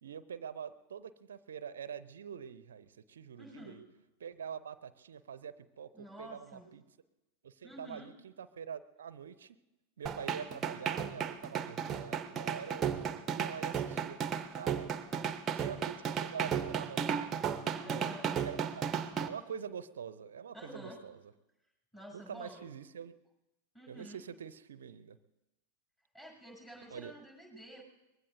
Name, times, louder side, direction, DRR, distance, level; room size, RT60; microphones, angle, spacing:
voice 1, 0.0-3.8 4.2-6.8 7.4-9.6 10.0-14.2 14.6-17.4 17.9-18.9 19.2-21.2 22.1-23.1 23.9-25.2 26.9-27.1, right 7 dB, 65° right, 16 dB, 0.6 m, -45 dB
voice 2, 3.4-3.8 5.9-6.7 7.6-8.1 14.9-15.4 17.6-18.3 20.5-21.0 21.9-22.7 23.7-24.2 26.1-27.8, equal, 10° left, -1 dB, 7.2 m, -50 dB
sound 1, 10.1-19.3, right 7 dB, 25° right, 0.8 m, -34 dB
23.5 x 20.5 x 2.7 m, 0.98 s
figure-of-eight pair, 90°, 0 cm